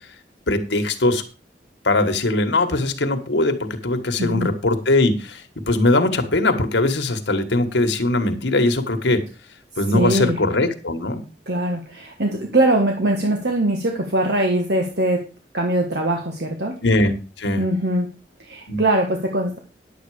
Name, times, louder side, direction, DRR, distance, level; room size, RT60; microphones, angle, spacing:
voice 1, 0.5-1.2 1.8-9.2 9.8-11.2 16.8-17.6 18.7-18.8, left 2 dB, 90° left, 6 dB, 1.5 m, -20 dB
voice 2, 4.2-4.5 9.9-10.4 11.5-15.2 15.5-16.7 17.6-18.1 18.4-19.6, right 1 dB, 70° right, 2 dB, 1.6 m, -21 dB
10.5 x 8.0 x 4.9 m, 0.32 s
head